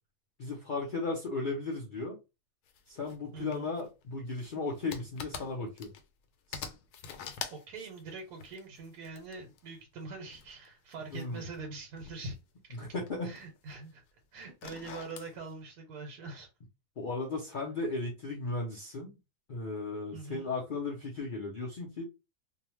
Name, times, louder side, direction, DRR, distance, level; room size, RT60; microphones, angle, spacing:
voice 1, 0.4-2.2 2.9-5.9 6.5-6.7 11.1-11.4 12.7-13.3 17.0-19.1 19.5-22.0, left 3 dB, 65° left, 0.4 m, -36 dB
sound 1, 2.7-3.2 3.5-6.3 6.5-9.7 10.3-12.4 12.7-13.9 14.4-15.3, left 7 dB, 90° left, 1.1 m, -45 dB
voice 2, 3.3-3.7 7.5-12.4 12.6-12.8 13.2-14.0 14.3-16.5 20.1-20.5, right 3 dB, 85° right, 1.3 m, -43 dB
2.7 x 2.1 x 3.0 m
omnidirectional pair, 1.6 m